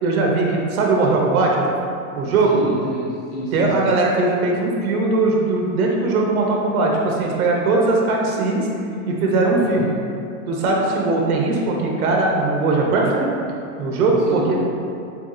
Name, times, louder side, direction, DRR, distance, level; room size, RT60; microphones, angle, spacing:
voice 1, 0.0-1.6 2.1-2.5 3.5-8.6 9.1-9.9 10.5-13.3 13.8-14.6, right 3 dB, 90° right, -1 dB, 1.0 m, -19 dB
voice 2, 2.4-3.9 9.6-10.0 14.3-14.5, left 1 dB, 20° left, -7 dB, 0.4 m, -30 dB
6.9 x 2.4 x 2.6 m, 2.6 s
supercardioid pair, 160°, 42 cm